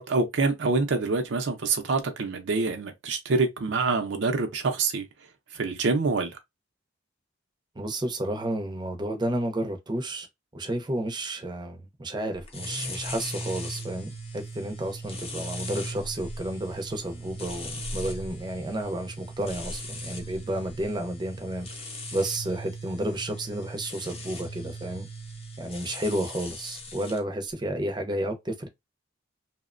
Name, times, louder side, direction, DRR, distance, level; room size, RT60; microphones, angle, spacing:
voice 1, 0.0-5.1 5.5-6.4, right 3 dB, 70° right, 0.5 m, -26 dB
voice 2, 7.8-10.3 10.5-21.7 22.1-25.1 25.6-28.7, right 1 dB, 25° right, 0.5 m, -31 dB
sound 1, 12.5-27.2, equal, 30° left, 0.6 m, -38 dB
2.8 x 2.1 x 2.4 m
head